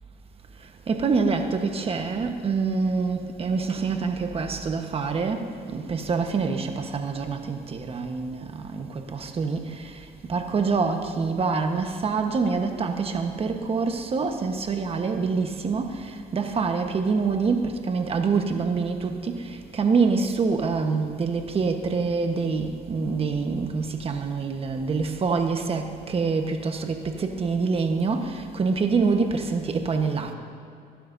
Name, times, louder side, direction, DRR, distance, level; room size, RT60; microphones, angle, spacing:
voice 1, 0.6-30.3, right 4 dB, 35° right, 5 dB, 1.2 m, -26 dB
20.5 x 12.0 x 2.7 m, 2.6 s
cardioid pair, 110°, 17 cm